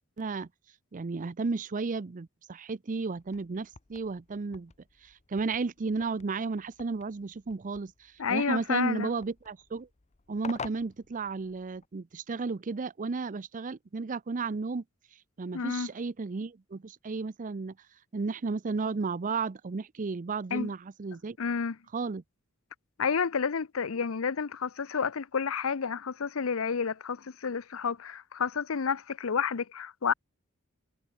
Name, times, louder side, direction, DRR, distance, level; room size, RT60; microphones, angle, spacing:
voice 1, 0.2-0.5 0.9-4.7 5.0-9.9 10.3-14.8 15.4-17.7 18.1-21.4 21.9-22.2, right 4 dB, 40° right, 0.5 m, -33 dB
sound 1, 3.2-11.9, left 5 dB, 35° left, 0.8 m, -49 dB
voice 2, 8.2-9.1 15.5-15.9 20.5-20.7 21.4-21.8 23.0-30.1, left 6 dB, 70° left, 0.7 m, -30 dB
head